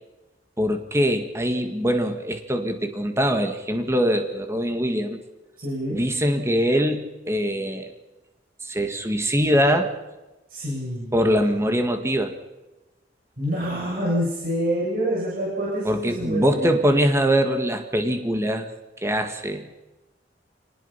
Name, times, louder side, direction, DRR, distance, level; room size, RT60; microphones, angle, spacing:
voice 1, 0.6-5.2 5.9-7.9 8.6-9.9 11.1-12.3 15.8-18.7 19.0-19.7, equal, 15° right, 6 dB, 2.0 m, -23 dB
voice 2, 5.6-6.0 10.5-11.2 13.4-16.7, equal, 50° right, -6 dB, 7.3 m, -27 dB
27.0 x 19.5 x 5.8 m, 1.0 s
head